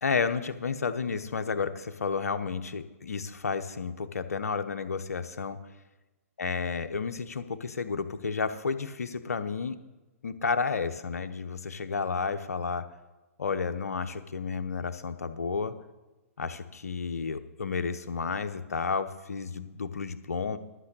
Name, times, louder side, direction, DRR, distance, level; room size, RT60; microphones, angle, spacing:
voice 1, 0.0-5.6 6.4-9.8 10.2-12.9 13.4-15.7 16.4-20.6, left 5 dB, 80° left, 10 dB, 0.9 m, -31 dB
11.5 x 6.1 x 8.1 m, 1.1 s
hypercardioid pair, 125°, 8 cm